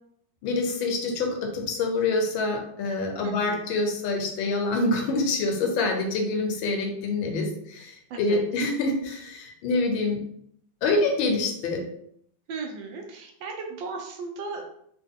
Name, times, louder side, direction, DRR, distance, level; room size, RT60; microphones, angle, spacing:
voice 1, 0.4-10.2 10.8-11.8, left 3 dB, 80° left, 2 dB, 1.5 m, -26 dB
voice 2, 3.2-3.6 8.1-8.4 12.5-14.6, right 4 dB, 75° right, 3 dB, 1.3 m, -36 dB
3.7 x 2.2 x 3.5 m, 0.69 s
omnidirectional pair, 2.2 m